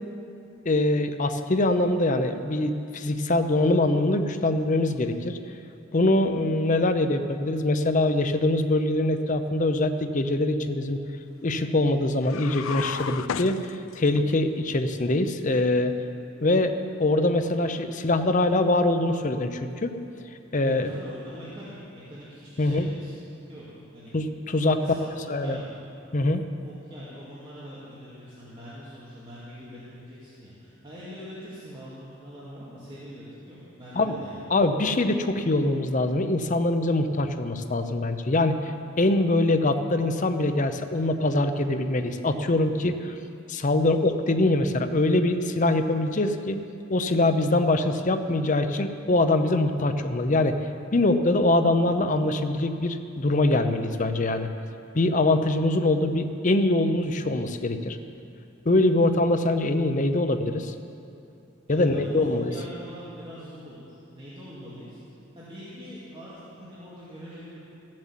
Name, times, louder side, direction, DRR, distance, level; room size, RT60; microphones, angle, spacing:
voice 1, 0.7-5.4 5.9-11.0 11.4-15.9 16.4-16.7 17.0-19.9 20.5-20.9 22.6-22.9 24.1-24.8 25.3-25.6 26.1-26.4 34.0-34.2 34.5-43.1 43.5-46.6 46.9-50.6 50.9-54.5 54.9-58.0 58.6-60.7 61.7-62.5, left 2 dB, 40° left, 8 dB, 0.7 m, -23 dB
sound 1, 12.2-14.2, left 7 dB, 85° left, 0.4 m, -33 dB
voice 2, 20.6-23.7 23.9-24.1 24.6-25.6 26.6-34.5 61.7-65.0 65.3-67.6, equal, 25° right, -10 dB, 2.3 m, -43 dB
14.5 x 7.6 x 7.5 m, 2.7 s
head